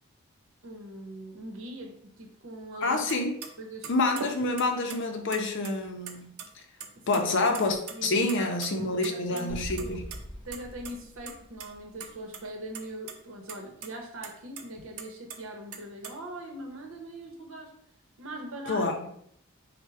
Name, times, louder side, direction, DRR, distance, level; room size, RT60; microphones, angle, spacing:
voice 1, 0.6-3.0 3.6-3.9 6.9-7.2 7.9-10.0 10.4-17.7 18.2-19.1, right 1 dB, 65° right, 2 dB, 0.9 m, -41 dB
voice 2, 2.8-3.3 3.9-6.4 7.1-10.0 18.7-19.1, left 2 dB, 55° left, 5 dB, 0.6 m, -27 dB
sound 1, 3.1-3.2 3.4-3.5 3.8-5.0 5.3-6.1 6.4-6.5 6.8-7.2 7.5-7.9 8.3-9.4 9.8-10.2 10.5-10.6 10.8-10.9 11.3-11.7 12.0-12.4 12.7-13.1 13.5-13.6 13.8-13.9 14.2-15.4 15.7-16.1, right 6 dB, 85° right, 0.6 m, -40 dB
sound 2, 9.5-12.4, equal, 10° left, 1.6 m, -42 dB
4.3 x 2.2 x 4.7 m, 0.69 s
head